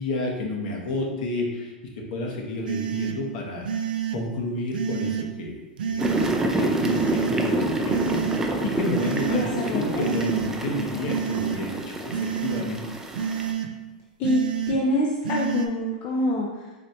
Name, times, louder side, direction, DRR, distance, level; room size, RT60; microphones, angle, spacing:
voice 1, 0.0-6.1 6.5-13.0, left 2 dB, 60° left, -1 dB, 1.0 m, -31 dB
sound 1, 2.7-3.2 3.6-4.2 4.7-5.3 5.8-6.3 6.8-7.4 7.9-8.4 8.9-9.5 10.0-10.5 11.1-11.6 12.1-12.6 13.1-13.7 14.2-14.8 15.2-15.7, right 8 dB, 80° right, 0.4 m, -28 dB
sound 2, 6.0-13.5, right 1 dB, 10° right, 0.4 m, -27 dB
voice 2, 9.3-10.3 14.2-16.7, left 1 dB, 40° left, -2 dB, 0.5 m, -26 dB
4.1 x 3.1 x 2.8 m, 1.2 s
hypercardioid pair, 115°, 5 cm